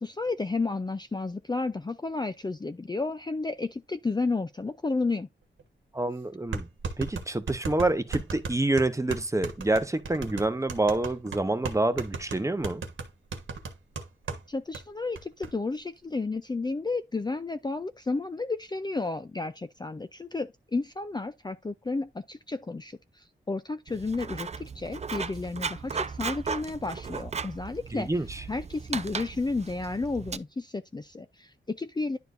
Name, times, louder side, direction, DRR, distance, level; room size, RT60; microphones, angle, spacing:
voice 1, 0.0-5.3 14.5-28.1 28.5-32.2, left 3 dB, 20° left, 0.5 m, -32 dB
sound 1, 5.6-5.7 6.5-14.4 14.7-14.8 15.2-15.5, right 4 dB, 90° right, 1.4 m, -36 dB
voice 2, 5.9-6.7 7.0-12.8 27.9-28.4, right 2 dB, 15° right, 0.8 m, -27 dB
Writing, 23.9-30.4, right 5 dB, 35° right, 0.4 m, -36 dB
10.5 x 4.5 x 2.6 m
wide cardioid pair, 95°, 20 cm